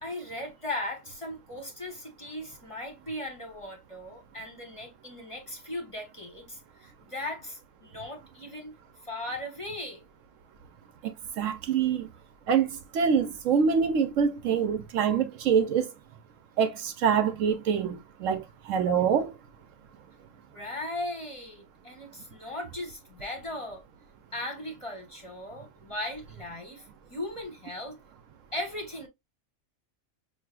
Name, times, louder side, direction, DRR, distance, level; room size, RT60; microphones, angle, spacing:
voice 1, 0.0-8.7 9.0-10.0 20.5-23.8 24.3-26.8 27.1-28.0 28.5-29.1, left 1 dB, 25° left, 1.1 m, -38 dB
voice 2, 11.0-12.1 12.5-15.9 16.6-19.4, right 7 dB, 70° right, 1.0 m, -25 dB
6.3 x 2.5 x 2.2 m
omnidirectional pair, 1.4 m